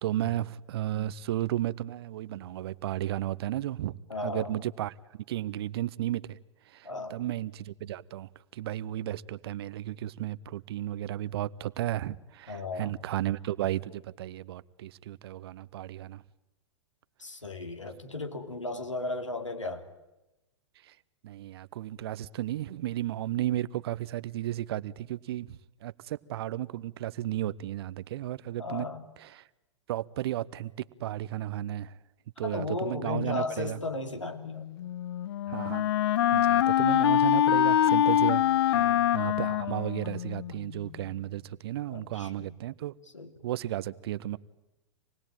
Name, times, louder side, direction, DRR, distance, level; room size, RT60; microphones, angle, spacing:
voice 1, 0.0-4.9 5.3-6.4 6.7-16.2 20.9-21.0 21.2-25.5 25.8-28.9 29.2-29.4 29.9-31.9 32.4-33.8 35.5-35.9 36.3-38.8 39.1-42.9 43.4-44.4, right 13 dB, 55° right, 0.9 m, -34 dB
voice 2, 4.1-4.5 6.8-7.2 12.5-12.9 17.2-19.9 28.6-29.0 32.4-34.7 38.7-39.1 41.9-42.6 43.1-43.3, left 3 dB, 85° left, 3.1 m, -35 dB
Wind instrument woodwind instrument, 34.8-40.6, left 11 dB, 60° left, 0.9 m, -24 dB
27.0 x 19.5 x 9.1 m
figure-of-eight pair, 100°, 15 cm